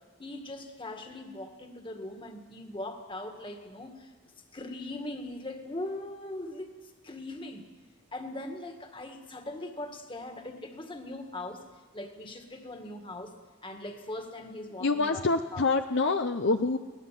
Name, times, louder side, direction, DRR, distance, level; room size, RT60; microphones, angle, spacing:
voice 1, 0.2-4.1 4.5-7.7 8.1-11.7 11.9-13.4 13.6-15.3 15.5-15.6, left 1 dB, 20° left, 5 dB, 1.9 m, -40 dB
voice 2, 14.8-16.8, left 3 dB, 55° left, 7 dB, 0.7 m, -26 dB
22.5 x 18.0 x 7.6 m, 1.4 s
head